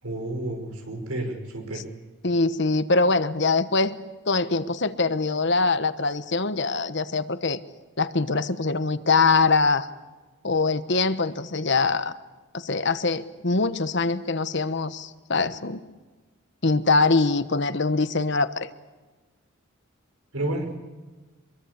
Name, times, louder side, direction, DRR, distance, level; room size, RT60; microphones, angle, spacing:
voice 1, 0.0-1.8 20.3-20.8, right 1 dB, 85° right, 4 dB, 5.5 m, -31 dB
voice 2, 2.2-4.0 4.3-7.6 8.0-9.9 10.4-12.1 12.5-15.8 16.6-18.7, left 3 dB, 55° left, 12 dB, 1.2 m, -23 dB
25.5 x 22.5 x 8.3 m, 1.3 s
head